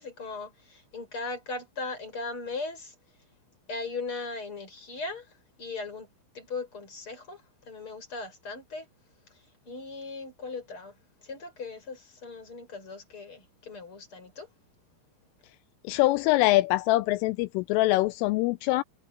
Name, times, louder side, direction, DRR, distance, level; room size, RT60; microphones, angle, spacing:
voice 1, 0.0-2.9 3.7-8.9 9.3-14.5, left 3 dB, 25° left, 7.4 m, -38 dB
voice 2, 15.8-18.8, left 18 dB, 85° left, 3.1 m, -24 dB
omnidirectional pair, 5.9 m